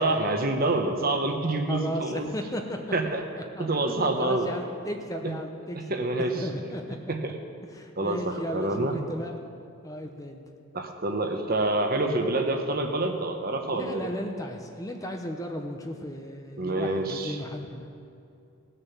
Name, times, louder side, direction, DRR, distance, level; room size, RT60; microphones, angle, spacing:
voice 1, 0.0-2.3 2.9-3.2 3.6-4.5 5.9-6.4 7.1-7.3 8.0-8.9 10.7-14.1 16.6-17.4, right 2 dB, 45° right, 4 dB, 1.0 m, -27 dB
voice 2, 1.7-2.8 3.6-6.0 6.4-7.0 7.6-9.4 9.8-10.4 13.7-17.9, equal, 15° left, 3 dB, 0.7 m, -35 dB
17.0 x 6.8 x 7.2 m, 2.6 s
head